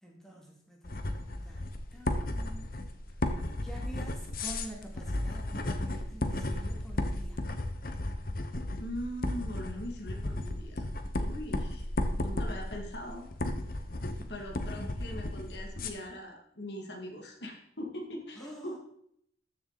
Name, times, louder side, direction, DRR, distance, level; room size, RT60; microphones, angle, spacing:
voice 1, 0.0-2.8 3.6-7.4 14.2-14.7 18.3-18.8, right 1 dB, 5° left, -2 dB, 2.4 m, -48 dB
sound 1, 0.8-15.9, left 1 dB, 50° left, 1.0 m, -34 dB
voice 2, 8.8-10.9 11.2-11.8 12.1-13.3 14.1-18.8, equal, 75° left, 1 dB, 2.3 m, -41 dB
14.0 x 7.0 x 4.1 m, 0.68 s
head